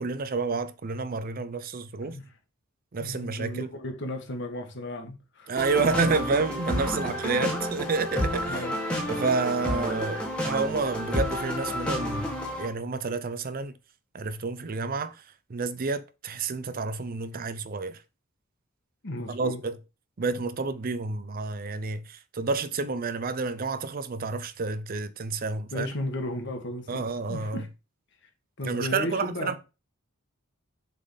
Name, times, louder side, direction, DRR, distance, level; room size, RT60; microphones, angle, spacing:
voice 1, 0.0-2.2 2.9-3.7 5.5-8.6 9.1-12.3 12.6-13.7 14.1-15.2 15.5-18.0 19.3-19.8 20.2-25.9 26.9-27.6 28.6-29.6, right 4 dB, 45° right, 0.5 m, -29 dB
voice 2, 3.0-5.6 6.7-6.8 7.2-7.5 8.5-8.8 19.0-19.6 25.7-27.7 28.6-29.5, left 1 dB, 55° left, 1.6 m, -35 dB
sound 1, 5.6-12.7, left 1 dB, 5° left, 1.9 m, -30 dB
6.7 x 4.0 x 5.5 m
head